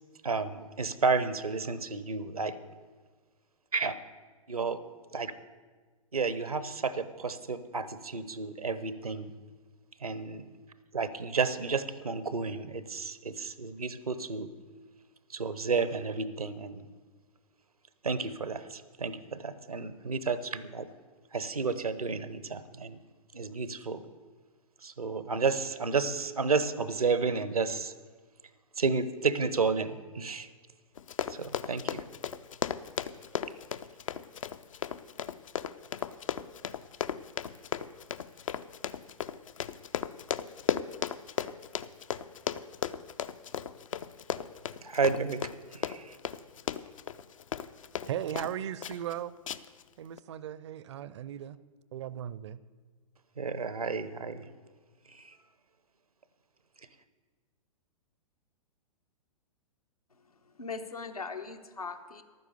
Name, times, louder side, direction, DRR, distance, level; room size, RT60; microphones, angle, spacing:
voice 1, 0.2-2.6 3.7-3.9 4.5-4.8 5.1-5.3 6.1-9.3 10.0-10.4 10.9-14.5 15.3-16.9 18.0-20.9 21.3-23.0 23.3-24.0 24.8-27.9 28.8-30.5 31.3-32.0 44.8-45.4 45.7-46.2 53.4-54.5 55.1-55.4, right 4 dB, 85° right, 0.8 m, -31 dB
Run, 31.0-48.5 48.8-49.1 49.5-49.8 50.2-50.3, left 8 dB, 65° left, 0.5 m, -35 dB
voice 2, 48.1-49.3 50.0-51.6 51.9-52.6, right 10 dB, 50° right, 0.5 m, -37 dB
voice 3, 60.1-62.2, left 4 dB, 85° left, 1.1 m, -40 dB
12.0 x 9.6 x 6.8 m
figure-of-eight pair, 110°, 18 cm